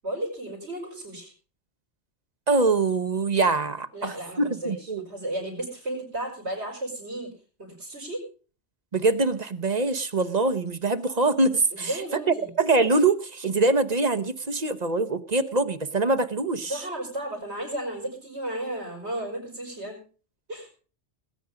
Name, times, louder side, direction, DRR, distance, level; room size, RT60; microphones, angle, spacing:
voice 1, 0.0-1.3 3.9-7.3 7.6-8.2 11.7-12.5 16.6-20.0 20.5-20.7, right 1 dB, 70° right, -5 dB, 5.2 m, -34 dB
voice 2, 2.5-4.1 4.4-5.1 8.9-12.0 12.3-16.8, right 3 dB, 40° right, 12 dB, 0.9 m, -24 dB
19.5 x 9.3 x 5.1 m, 0.38 s
omnidirectional pair, 1.2 m